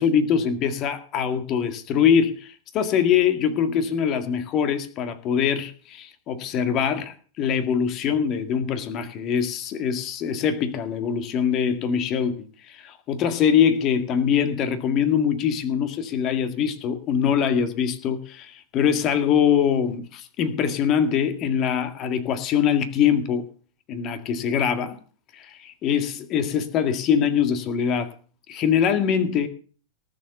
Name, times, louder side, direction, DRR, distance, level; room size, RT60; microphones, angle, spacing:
voice 1, 0.0-12.4 12.7-23.4 23.9-25.0 25.3-28.1 28.5-29.5, left 8 dB, 35° left, 2.0 m, -23 dB
18.5 x 7.3 x 7.0 m
figure-of-eight pair, 90°, 0 cm